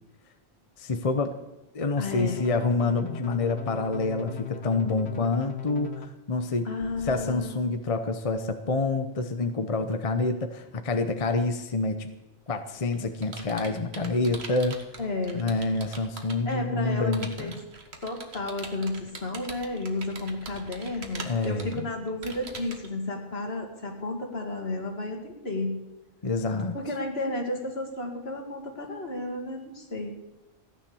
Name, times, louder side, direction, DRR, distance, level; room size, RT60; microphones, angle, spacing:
voice 1, 0.8-1.3 1.7-6.7 7.0-12.1 12.5-14.8 15.3-17.5 21.3-21.9 26.2-26.8, left 3 dB, 35° left, 7 dB, 0.9 m, -27 dB
sound 1, 2.0-6.1 6.8-7.3, left 6 dB, 90° left, 1.3 m, -38 dB
voice 2, 2.0-2.4 6.6-7.6 13.5-13.7 15.0-15.4 16.5-17.6 18.0-25.8 26.7-30.1, left 2 dB, 75° left, 2 dB, 2.6 m, -32 dB
Computer keyboard, 12.5-16.5 17.1-22.9, right 3 dB, 80° right, 1.8 m, -43 dB
15.0 x 10.5 x 7.0 m, 1.0 s
omnidirectional pair, 1.1 m